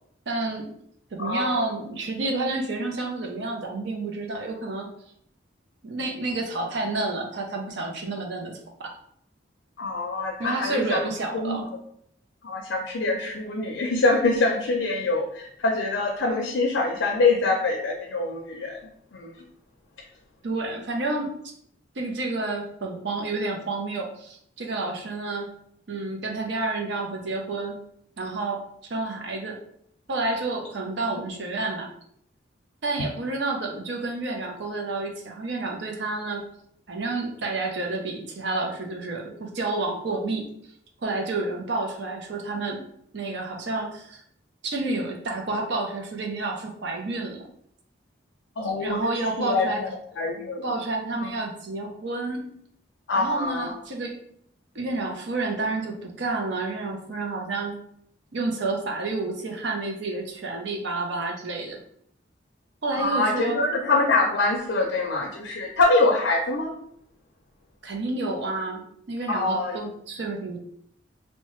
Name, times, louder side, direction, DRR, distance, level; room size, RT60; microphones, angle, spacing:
voice 1, 0.3-0.7 1.1-4.9 5.8-8.9 10.4-11.7 20.4-21.4 21.9-25.5 25.9-27.8 28.2-28.6 28.9-29.6 30.1-31.9 32.8-36.4 36.9-40.5 41.0-42.9 43.1-44.2 44.6-47.5 48.6-49.8 50.6-52.5 53.2-54.2 54.7-57.8 58.3-61.8 62.8-63.6 67.8-70.6, right 2 dB, 65° right, 1 dB, 0.6 m, -30 dB
voice 2, 1.2-1.6 9.8-11.0 11.3-11.6 12.4-18.8 19.1-19.3 48.6-49.1 49.4-49.7 50.2-50.6 51.2-51.3 53.1-53.7 62.9-66.7 69.3-69.8, left 3 dB, 80° left, 1 dB, 0.4 m, -24 dB
2.8 x 2.1 x 3.0 m, 0.69 s
head